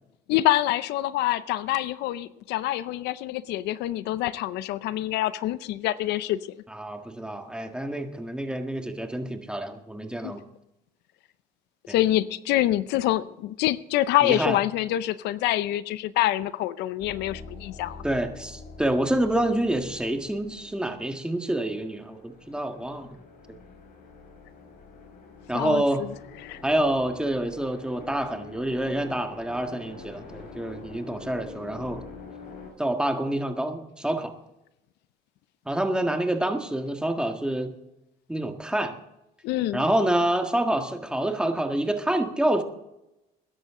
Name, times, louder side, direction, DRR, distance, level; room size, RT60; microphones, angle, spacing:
voice 1, 0.3-6.4 10.2-10.3 11.9-18.0 25.5-26.1 26.4-26.6 39.4-39.8, left 14 dB, 85° left, 0.6 m, -26 dB
voice 2, 6.7-10.4 11.9-12.0 14.2-14.6 18.0-23.1 25.5-26.1 26.6-32.1 32.8-34.3 35.6-37.7 38.3-38.9 39.7-42.6, right 1 dB, 5° right, 1.7 m, -27 dB
sound 1, 17.0-32.7, left 4 dB, 55° left, 4.9 m, -46 dB
21.0 x 11.0 x 3.7 m
cardioid pair, 110°, 17 cm